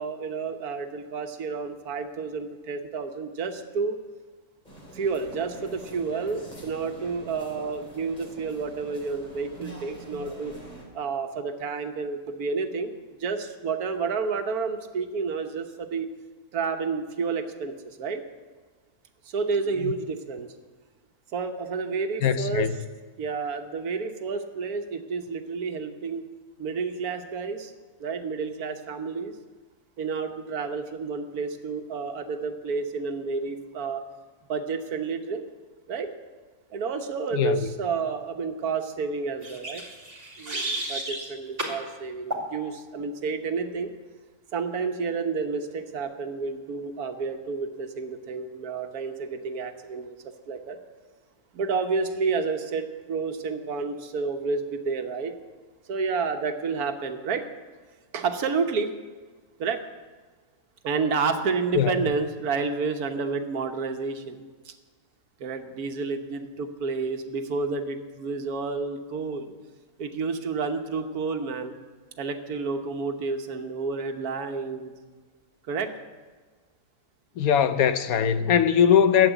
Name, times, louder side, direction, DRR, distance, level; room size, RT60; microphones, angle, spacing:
voice 1, 0.0-4.0 4.9-10.5 10.9-12.9 13.2-16.1 16.5-18.2 19.3-20.5 21.3-22.7 23.2-26.3 26.6-27.7 28.0-29.3 30.0-34.0 34.5-35.4 35.9-36.1 36.7-39.8 40.4-43.9 44.5-50.2 50.5-50.8 51.5-55.3 55.9-57.4 58.1-58.9 59.6-59.8 60.8-64.4 64.6-64.7 65.4-69.5 70.0-71.7 72.2-74.9 75.7-75.9, right 4 dB, 80° right, 1.5 m, -30 dB
sound 1, 4.6-10.8, right 1 dB, 30° left, 3.4 m, -45 dB
voice 2, 22.2-22.8 37.3-37.7 61.7-61.9 77.4-79.3, left 8 dB, 75° left, 1.2 m, -21 dB
sound 2, 39.4-41.3 41.6-41.8 42.3-42.5, right 1 dB, 40° right, 2.7 m, -32 dB
12.5 x 8.0 x 8.2 m
omnidirectional pair, 1.6 m